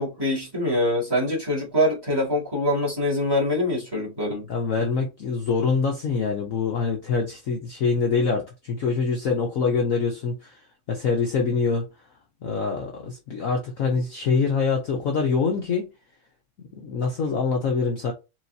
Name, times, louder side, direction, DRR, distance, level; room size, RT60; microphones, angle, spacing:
voice 1, 0.0-4.5, left 1 dB, 10° right, 1.7 m, -24 dB
voice 2, 4.5-11.9 12.4-15.9 16.8-18.1, left 5 dB, 65° left, 0.8 m, -25 dB
4.5 x 3.1 x 2.7 m
omnidirectional pair, 2.2 m